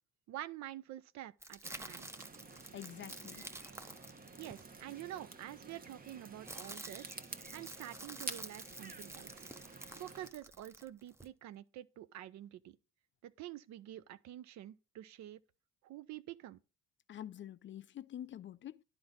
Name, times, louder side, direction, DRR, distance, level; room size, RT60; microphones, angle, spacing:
voice 1, 0.3-2.1 4.4-7.2 7.5-9.3 9.9-12.8 13.2-15.4 15.8-16.6, right 13 dB, 65° right, 0.5 m, -48 dB
sound 1, 1.4-5.1 6.0-11.3, right 1 dB, 10° right, 0.6 m, -50 dB
sound 2, 1.6-10.3, right 4 dB, 30° right, 1.0 m, -50 dB
voice 2, 2.7-3.4 17.1-18.8, left 11 dB, 40° left, 0.4 m, -47 dB
10.5 x 4.5 x 4.0 m
supercardioid pair, 55°, 30 cm